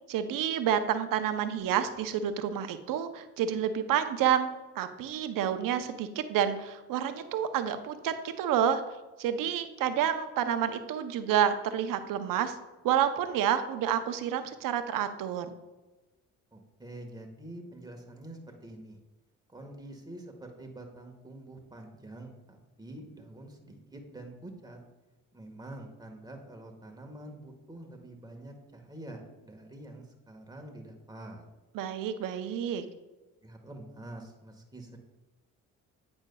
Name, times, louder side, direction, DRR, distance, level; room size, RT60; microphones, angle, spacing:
voice 1, 0.1-4.5 4.7-8.8 9.2-12.6 12.8-15.5 31.7-32.8, right 9 dB, 65° right, 10 dB, 0.7 m, -29 dB
voice 2, 16.5-19.0 19.5-24.8 25.3-31.4 33.4-35.0, right 1 dB, 10° right, 2 dB, 1.4 m, -46 dB
8.8 x 5.3 x 2.3 m, 1.1 s
supercardioid pair, 60°, 35 cm